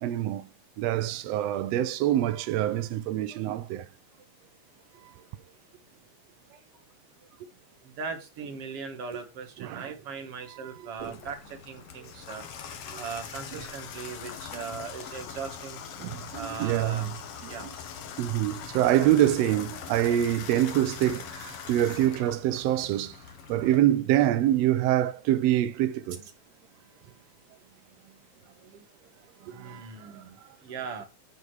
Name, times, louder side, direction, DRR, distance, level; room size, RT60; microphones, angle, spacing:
voice 1, 0.0-0.5 0.8-3.9 9.6-9.9 10.5-11.2 12.9-13.0 16.0-17.1 17.4-17.6 18.2-23.2 23.5-26.2 29.4-29.9 30.1-30.2, right 12 dB, 90° right, 1.4 m, -26 dB
voice 2, 8.0-12.4 13.0-15.8 16.3-17.2 17.5-17.7 26.1-26.3 28.6-28.7 29.5-30.4 30.6-31.1, right 5 dB, 50° right, 2.3 m, -39 dB
Water tap faucet / Bathtub (filling or washing), 11.0-23.8, left 8 dB, 65° left, 1.6 m, -42 dB
8.2 x 5.3 x 6.3 m
omnidirectional pair, 3.7 m